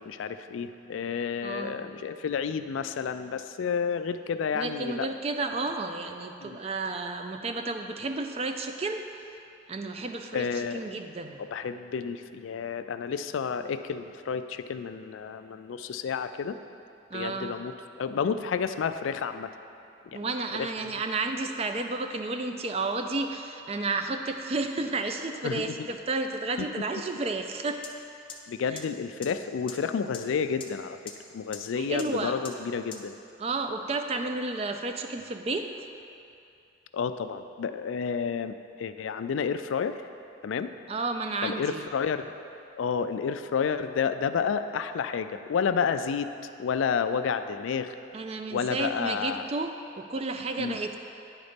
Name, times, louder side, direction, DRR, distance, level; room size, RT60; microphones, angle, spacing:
voice 1, 0.0-5.1 6.4-6.6 10.3-10.8 11.4-16.6 17.1-19.5 20.1-20.3 20.5-20.9 25.4-25.9 28.5-33.2 36.9-40.0 40.4-40.7 41.4-42.3 42.8-46.3 46.6-47.9 48.5-49.4 50.6-50.8, left 6 dB, 90° left, 10 dB, 0.3 m, -30 dB
voice 2, 1.4-1.8 4.5-9.0 9.7-11.4 17.1-17.6 20.1-27.8 28.7-28.8 31.8-32.4 33.4-35.7 40.9-41.9 48.1-51.0, right 3 dB, 30° right, 6 dB, 0.4 m, -32 dB
sound 1, 27.8-27.9 28.3-28.4 28.8-28.9 29.2-29.3 29.7-29.8 30.1-30.2 30.6-30.7 31.1-31.2 31.5-31.6 32.0-32.1 32.4-32.5 32.9-33.0, left 7 dB, 25° left, 0.5 m, -39 dB
9.9 x 4.1 x 5.1 m, 2.7 s
head